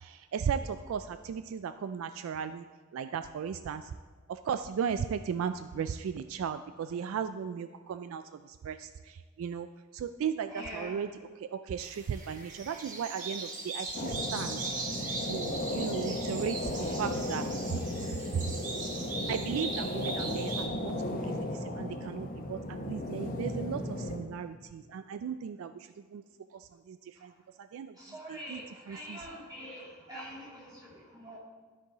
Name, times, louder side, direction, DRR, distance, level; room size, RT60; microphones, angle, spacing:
voice 1, 0.0-2.6 2.9-3.8 4.5-8.2 8.6-8.9 9.4-9.7 9.9-11.1 11.4-14.6 15.2-17.4 19.3-21.2 21.6-25.7 26.1-26.2 26.9-27.0 27.2-27.3 27.7-27.9 28.3-29.2, right 7 dB, 70° right, 11 dB, 0.3 m, -36 dB
voice 2, 10.5-11.0 28.0-31.4, equal, 20° right, -5 dB, 2.2 m, -44 dB
sound 1, 11.8-20.7, right 3 dB, 35° right, 1.1 m, -39 dB
sound 2, 13.9-24.2, left 1 dB, 40° left, 0.8 m, -35 dB
12.0 x 4.7 x 4.0 m, 1.5 s
head